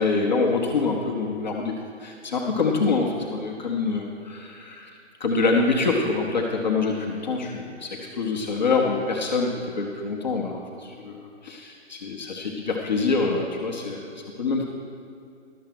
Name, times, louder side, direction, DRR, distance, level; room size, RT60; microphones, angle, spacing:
voice 1, 0.0-1.7 2.0-4.9 5.2-11.2 11.4-14.0 14.4-14.6, left 4 dB, 35° left, 0 dB, 1.0 m, -25 dB
12.0 x 6.6 x 6.0 m, 2.5 s
figure-of-eight pair, 140°, 37 cm